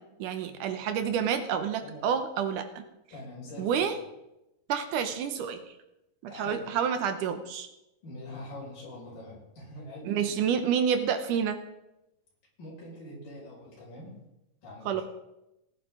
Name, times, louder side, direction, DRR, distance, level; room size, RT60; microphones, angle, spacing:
voice 1, 0.2-2.8 3.6-4.0 4.7-5.7 6.2-7.7 10.1-11.6 14.9-15.0, right 7 dB, 75° right, 8 dB, 2.2 m, -29 dB
voice 2, 3.1-3.9 6.3-6.7 8.0-10.4 12.6-14.1 14.6-15.0, left 1 dB, 70° left, -5 dB, 7.2 m, -44 dB
18.5 x 9.7 x 3.8 m, 0.91 s
omnidirectional pair, 4.1 m